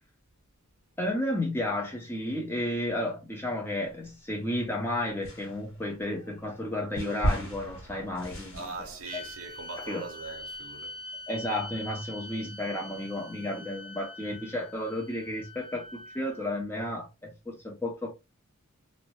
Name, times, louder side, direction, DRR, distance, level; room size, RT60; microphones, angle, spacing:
voice 1, 1.0-8.7 9.9-10.0 11.3-18.1, left 1 dB, 10° left, 0.6 m, -32 dB
sound 1, 3.8-4.7 5.2-10.5, right 1 dB, 60° left, 0.9 m, -36 dB
voice 2, 8.5-11.0, right 4 dB, 70° right, 0.6 m, -41 dB
sound 2, 9.0-16.5, left 2 dB, 30° left, 1.0 m, -44 dB
2.2 x 2.1 x 2.7 m
head